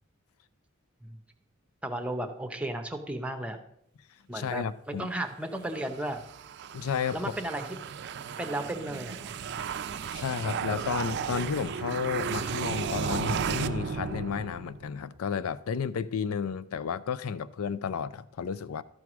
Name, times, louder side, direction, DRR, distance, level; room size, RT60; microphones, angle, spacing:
voice 1, 1.8-3.6 4.3-4.6 5.0-6.2 7.1-7.7 8.4-9.3, right 1 dB, 5° right, 0.7 m, -34 dB
voice 2, 4.3-5.1 6.7-7.3 10.1-18.8, left 6 dB, 85° left, 0.4 m, -32 dB
sound 1, 5.6-15.0, right 6 dB, 55° right, 0.4 m, -34 dB
12.0 x 4.7 x 6.0 m
head